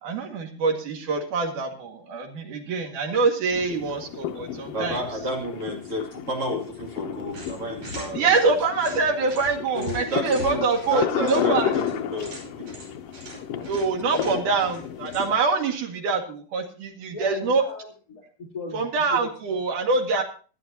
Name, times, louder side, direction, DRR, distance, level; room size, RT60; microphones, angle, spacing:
voice 1, 0.0-5.0 8.2-11.7 13.7-17.6 18.7-20.2, right 4 dB, 70° right, 3 dB, 3.4 m, -25 dB
sound 1, 3.5-15.4, left 10 dB, 80° left, 1.4 m, -32 dB
voice 2, 4.7-8.5 9.7-12.7 13.3-13.6, right 1 dB, 40° right, -1 dB, 3.3 m, -32 dB
sound 2, 7.3-15.5, left 1 dB, 85° right, 7.1 m, -42 dB
voice 3, 14.1-14.5 17.1-19.3 20.1-20.2, left 3 dB, 25° left, -6 dB, 3.9 m, -38 dB
19.0 x 11.5 x 2.8 m, 0.38 s
omnidirectional pair, 3.9 m